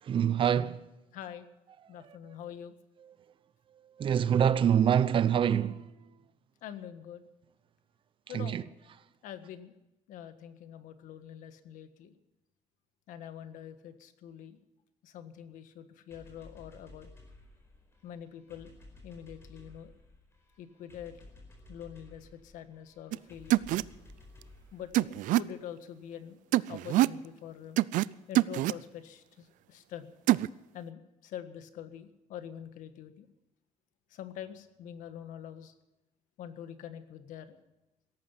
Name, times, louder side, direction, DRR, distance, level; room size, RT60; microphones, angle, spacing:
voice 1, 0.1-0.8 4.0-5.8 8.3-8.6, right 8 dB, 40° right, 0.7 m, -25 dB
voice 2, 1.1-1.5 1.9-2.7 6.6-7.2 8.3-8.7 9.2-9.7 10.1-12.1 13.1-14.6 15.0-17.1 18.0-18.7 19.0-19.9 20.6-21.2 21.7-23.6 24.7-26.4 26.7-27.8 28.3-30.1 30.7-33.3 34.1-35.7 36.4-37.6, left 9 dB, 85° left, 1.6 m, -45 dB
sound 1, 16.1-25.7, left 2 dB, 20° left, 4.6 m, -55 dB
sound 2, 23.1-23.2 23.5-23.8 24.9-25.4 26.5-27.2 27.8-28.1 28.3-28.7 30.3-30.5, right 16 dB, 80° right, 0.4 m, -25 dB
17.0 x 14.0 x 5.8 m
cardioid pair, 160°, 13 cm